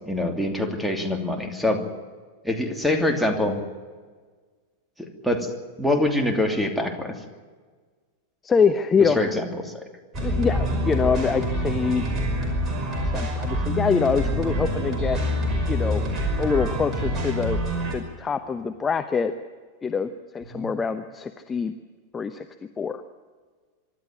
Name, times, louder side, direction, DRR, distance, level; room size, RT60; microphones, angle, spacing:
voice 1, 0.1-1.8 2.4-3.6 5.0-5.5 5.8-7.1 9.0-9.8 20.5-20.7, left 1 dB, ahead, 5 dB, 2.8 m, -25 dB
voice 2, 8.4-9.3 10.2-12.1 13.1-15.2 15.7-16.0 16.4-17.6 17.9-19.3 19.8-21.7 22.1-22.5 22.8-23.0, left 5 dB, 20° left, 8 dB, 0.9 m, -24 dB
sound 1, 10.1-18.0, equal, 25° right, 5.4 m, -26 dB
24.5 x 12.0 x 9.7 m, 1.5 s
figure-of-eight pair, 90°, 0 cm